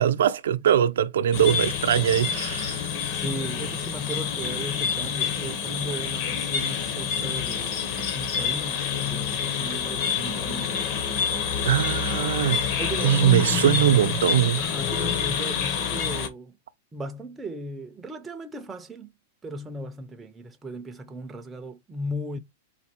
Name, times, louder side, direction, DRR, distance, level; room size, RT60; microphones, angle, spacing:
voice 1, 0.0-2.9 11.6-12.7 13.0-14.6, right 10 dB, 85° right, 0.5 m, -21 dB
sound 1, 1.3-16.3, left 7 dB, 40° left, 0.8 m, -27 dB
voice 2, 3.1-10.9 12.8-14.1 14.6-16.6 16.9-19.1 19.4-22.4, right 1 dB, 10° right, 0.5 m, -36 dB
4.1 x 2.6 x 4.4 m
supercardioid pair, 165°, 0 cm